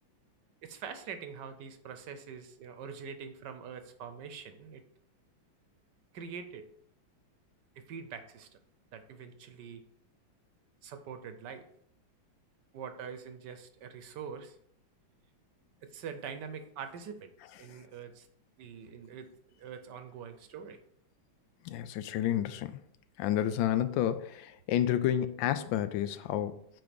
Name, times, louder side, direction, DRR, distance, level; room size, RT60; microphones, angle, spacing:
voice 1, 0.6-4.8 6.1-6.7 7.8-8.5 8.9-9.8 10.8-11.7 12.7-14.6 15.8-17.3 17.6-18.3 18.6-20.8, right 6 dB, 65° right, 1.3 m, -44 dB
voice 2, 21.6-22.8 23.2-26.7, left 11 dB, 75° left, 1.3 m, -30 dB
9.1 x 4.0 x 5.1 m
omnidirectional pair, 2.2 m